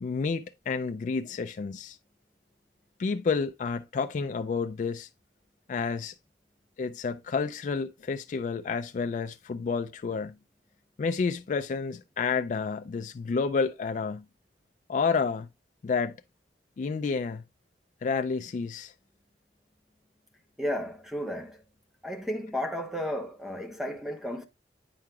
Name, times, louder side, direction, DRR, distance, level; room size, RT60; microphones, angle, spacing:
voice 1, 0.0-2.0 3.0-5.1 5.7-6.1 6.8-10.3 11.0-14.2 14.9-15.5 15.8-16.2 16.8-17.4 18.0-18.9, left 5 dB, 45° left, 0.3 m, -30 dB
voice 2, 20.6-21.6 22.0-24.4, equal, ahead, 0.8 m, -33 dB
9.0 x 4.7 x 2.3 m
head